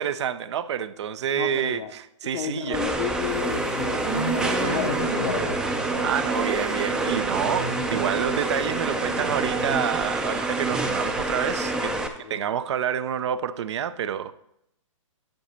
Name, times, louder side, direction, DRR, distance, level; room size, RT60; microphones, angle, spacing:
voice 1, 0.0-2.9 6.0-11.9 12.2-14.3, right 9 dB, 55° right, 15 dB, 0.5 m, -28 dB
voice 2, 1.3-1.9 2.3-5.6 11.6-12.5, left 9 dB, 55° left, 9 dB, 0.7 m, -33 dB
sound 1, 2.7-12.1, right 2 dB, 5° right, 0.4 m, -28 dB
sound 2, 3.3-10.1, right 3 dB, 75° right, 2.8 m, -32 dB
sound 3, 5.8-11.0, right 11 dB, 30° right, 0.9 m, -37 dB
10.5 x 4.8 x 4.2 m, 0.78 s
hypercardioid pair, 130°, 17 cm